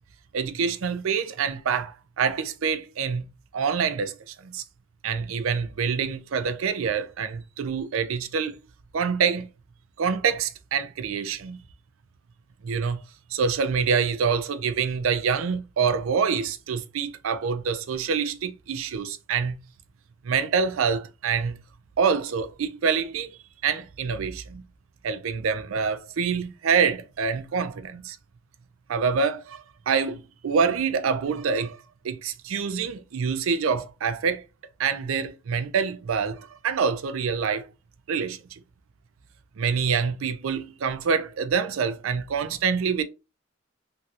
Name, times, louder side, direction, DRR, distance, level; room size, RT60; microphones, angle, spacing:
voice 1, 0.3-3.2 3.5-4.6 5.0-8.6 8.9-9.5 10.0-11.6 12.6-13.0 13.3-19.5 20.2-21.6 22.0-23.3 23.6-24.6 25.0-28.2 28.9-31.8 32.0-34.4 34.8-37.6 38.1-38.4 39.6-43.0, right 6 dB, 80° right, 0.4 m, -26 dB
3.0 x 2.8 x 2.4 m
head